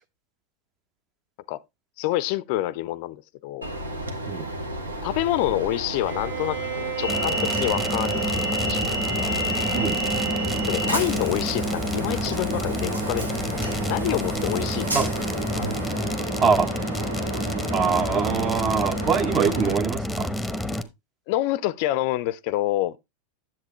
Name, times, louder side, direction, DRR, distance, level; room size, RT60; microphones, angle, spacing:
voice 1, 2.0-3.7 5.0-8.9 9.2-9.3 10.7-13.3 13.9-15.1 15.5-15.7 21.3-23.0, left 16 dB, 45° left, 0.4 m, -27 dB
Train, 3.6-19.8, right 1 dB, 80° right, 1.4 m, -31 dB
Bowed string instrument, 6.1-12.1, right 8 dB, 50° right, 1.9 m, -35 dB
sound 1, 7.1-20.8, equal, ahead, 0.9 m, -29 dB
voice 2, 9.7-10.0 14.9-15.1 16.4-16.7 17.7-20.3, right 6 dB, 25° right, 0.7 m, -23 dB
10.0 x 7.5 x 3.0 m
figure-of-eight pair, 90°, 0 cm